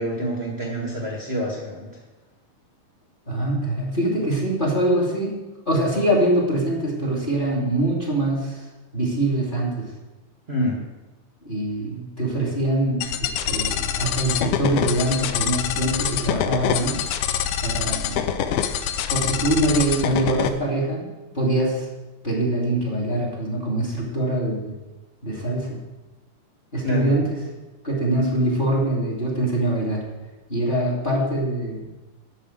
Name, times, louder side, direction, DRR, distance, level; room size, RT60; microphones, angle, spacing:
voice 1, 0.0-1.9 10.5-10.8 26.8-27.1, equal, 50° right, -3 dB, 0.7 m, -26 dB
voice 2, 3.3-8.6 8.9-9.9 11.4-17.0 17.6-18.3 19.1-21.1 21.3-21.9 22.2-24.7 25.2-25.8 26.7-27.2 27.8-30.0 30.5-31.9, right 1 dB, 15° left, -3 dB, 2.4 m, -24 dB
sound 1, 13.0-20.5, left 9 dB, 85° left, 2.6 m, -25 dB
12.0 x 5.5 x 7.8 m, 1.1 s
omnidirectional pair, 4.3 m